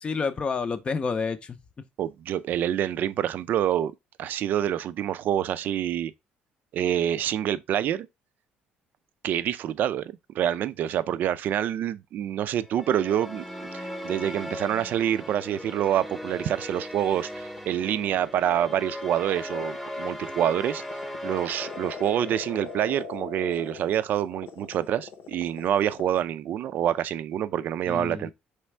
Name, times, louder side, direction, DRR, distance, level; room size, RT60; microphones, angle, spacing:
voice 1, 0.0-1.6 27.9-28.3, left 5 dB, 30° left, 0.5 m, -29 dB
voice 2, 2.0-3.9 4.2-6.1 6.7-8.1 9.2-13.4 13.7-20.8 21.2-28.3, right 10 dB, 60° right, 0.4 m, -27 dB
sound 1, 12.6-23.0, left 1 dB, 5° left, 0.9 m, -38 dB
sound 2, 17.2-26.2, left 6 dB, 75° left, 0.8 m, -41 dB
4.4 x 3.3 x 3.1 m
cardioid pair, 110°, 3 cm